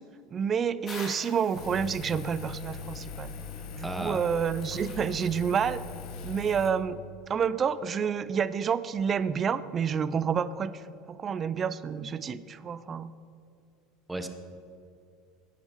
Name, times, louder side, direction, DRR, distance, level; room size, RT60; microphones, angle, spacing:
voice 1, 0.3-3.3 3.8-5.9 6.2-7.0 7.3-10.7 11.1-13.1, right 7 dB, 30° right, 16 dB, 0.4 m, -29 dB
sound 1, 0.9-6.3, left 3 dB, 30° left, 2.5 m, -49 dB
Engine, 1.5-6.7, left 5 dB, 60° left, 1.4 m, -40 dB
voice 2, 3.8-4.2 14.1-14.3, right 2 dB, 5° right, 7 dB, 0.9 m, -33 dB
11.0 x 10.0 x 4.5 m, 2.5 s
supercardioid pair, 135°, 0 cm